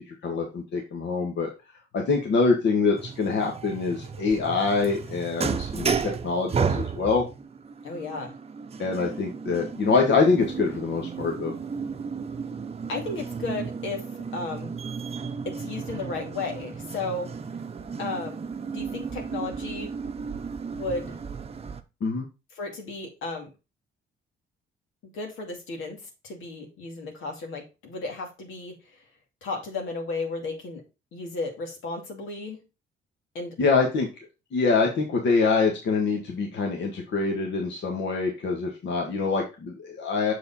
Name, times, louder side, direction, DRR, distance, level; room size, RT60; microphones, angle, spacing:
voice 1, 0.2-1.5 1.9-7.2 8.8-11.5 22.0-22.3 33.6-34.1 34.5-40.3, left 4 dB, 65° left, 1 dB, 1.7 m, -25 dB
sound 1, 3.0-21.8, right 5 dB, 30° right, 0.7 m, -33 dB
voice 2, 7.8-8.3 12.9-14.1 14.3-14.7 15.5-17.3 18.0-18.4 18.7-19.9 20.7-21.2 22.6-23.5 25.0-28.8 29.4-30.8 31.1-32.6 33.3-33.6, left 3 dB, 85° left, 2 dB, 2.4 m, -34 dB
6.7 x 5.0 x 4.1 m, 0.28 s
cardioid pair, 90°, 20 cm